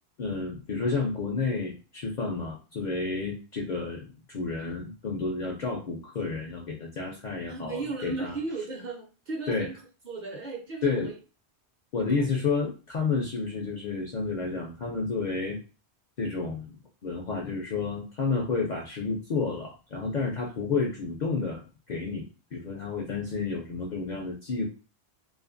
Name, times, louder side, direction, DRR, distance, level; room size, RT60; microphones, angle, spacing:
voice 1, 0.2-8.4 9.5-9.7 10.8-11.1 11.9-15.6 16.2-16.7 17.0-22.2 22.5-24.7, left 4 dB, 60° left, -1 dB, 0.5 m, -30 dB
voice 2, 7.5-11.1 12.0-12.3, right 3 dB, 50° right, -1 dB, 0.6 m, -36 dB
2.6 x 2.4 x 2.5 m, 0.34 s
omnidirectional pair, 1.2 m